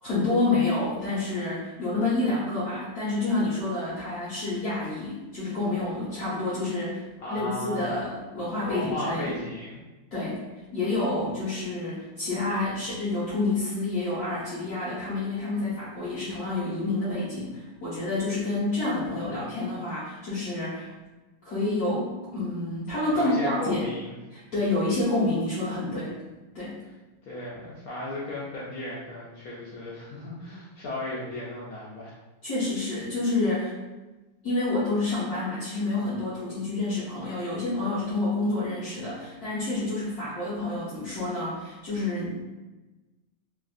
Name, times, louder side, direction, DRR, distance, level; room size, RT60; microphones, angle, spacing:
voice 1, 0.0-7.0 7.3-9.4 10.1-10.4 10.7-20.9 21.4-23.9 24.3-26.1 26.5-26.8 32.4-33.7 34.4-42.4, left 2 dB, 55° left, -11 dB, 1.3 m, -28 dB
voice 2, 7.2-8.1 8.6-9.8 23.1-24.2 27.2-32.2, left 1 dB, 75° left, -6 dB, 0.8 m, -35 dB
3.4 x 2.3 x 2.4 m, 1.1 s
omnidirectional pair, 2.1 m